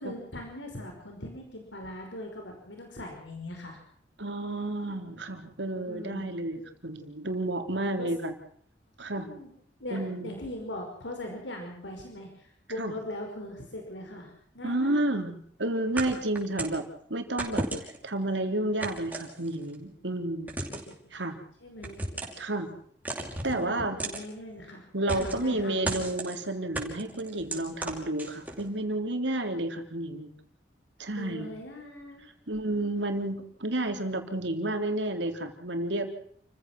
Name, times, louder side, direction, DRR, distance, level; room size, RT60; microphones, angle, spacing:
voice 1, 0.0-3.8 5.9-6.3 8.0-8.1 9.2-9.5 9.8-15.0 21.6-22.1 23.5-24.8 25.2-25.8 31.2-32.3, left 1 dB, 90° left, 2 dB, 5.4 m, -40 dB
voice 2, 4.2-8.3 9.0-9.3 9.9-10.3 12.8-12.9 14.6-17.7 18.0-20.5 21.1-21.4 22.4-22.7 23.4-24.0 24.9-30.3 31.0-31.5 32.5-36.1, right 1 dB, 85° right, 5 dB, 3.6 m, -31 dB
sound 1, 16.0-16.8 17.4-18.1 18.8-19.7 20.5-21.0 21.8-22.4 23.1-23.5 24.0-24.2 25.1-25.5 25.8-26.4 26.7-28.6, right 2 dB, 10° right, 5.7 m, -34 dB
29.5 x 15.5 x 6.2 m, 0.63 s
head